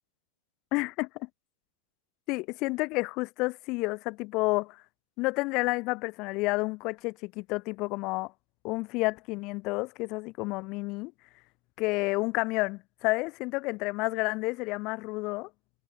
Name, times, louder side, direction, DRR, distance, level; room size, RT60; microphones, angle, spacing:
voice 1, 0.7-1.3 2.3-4.8 5.2-8.3 8.6-11.1 11.8-15.5, left 24 dB, 40° left, 1.2 m, -30 dB
figure-of-eight pair, 90°, 0 cm